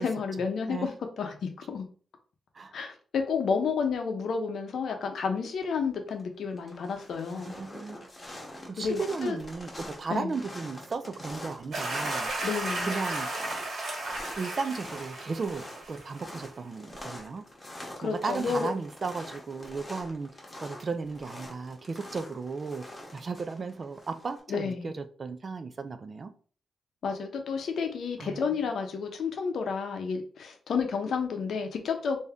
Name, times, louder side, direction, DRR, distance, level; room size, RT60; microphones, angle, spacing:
voice 1, 0.0-1.8 2.7-7.5 8.8-9.4 10.1-10.3 12.4-12.9 18.0-18.7 24.5-24.9 27.0-32.2, left 5 dB, 65° left, 0.6 m, -31 dB
sound 1, 5.9-6.2 6.5-24.4, left 1 dB, 20° left, 0.9 m, -45 dB
voice 2, 7.3-8.1 8.7-12.3 12.8-13.3 14.4-17.4 18.0-20.3 20.6-22.8 23.1-26.3 28.2-28.4, right 4 dB, 35° right, 0.3 m, -35 dB
sound 2, 11.7-16.4, right 2 dB, 60° right, 1.4 m, -34 dB
3.4 x 2.7 x 3.4 m
wide cardioid pair, 165°, 0 cm